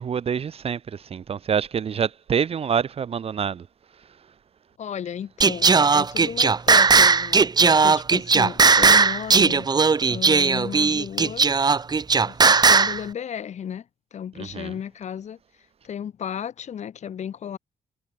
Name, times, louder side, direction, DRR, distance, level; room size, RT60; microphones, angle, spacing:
voice 1, 0.0-3.7 14.4-14.7, right 7 dB, 50° right, 1.3 m, -26 dB
voice 2, 4.8-9.7 10.1-11.5 12.2-15.4 15.8-17.6, left 8 dB, 65° left, 5.8 m, -34 dB
Singing, 5.4-13.0, right 5 dB, 30° right, 1.3 m, -17 dB
cardioid pair, 90°, 13 cm